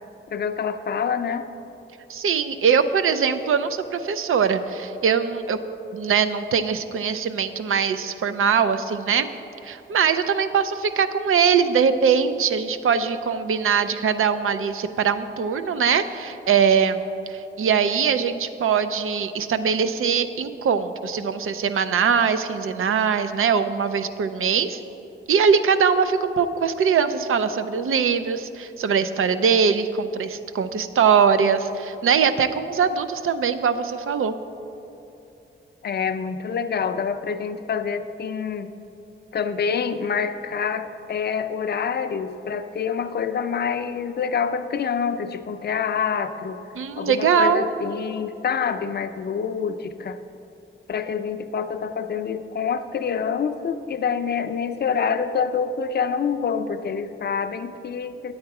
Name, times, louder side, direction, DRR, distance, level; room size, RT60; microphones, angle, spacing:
voice 1, 0.3-1.5 35.8-38.7 39.3-46.6 47.0-50.2 50.9-58.3, left 6 dB, 50° left, 9 dB, 0.4 m, -26 dB
voice 2, 2.1-5.6 5.9-9.3 9.6-17.0 17.3-24.8 25.3-34.3 46.8-47.7, right 6 dB, 85° right, 11 dB, 0.5 m, -22 dB
8.8 x 8.7 x 4.7 m, 2.9 s
wide cardioid pair, 170°, 21 cm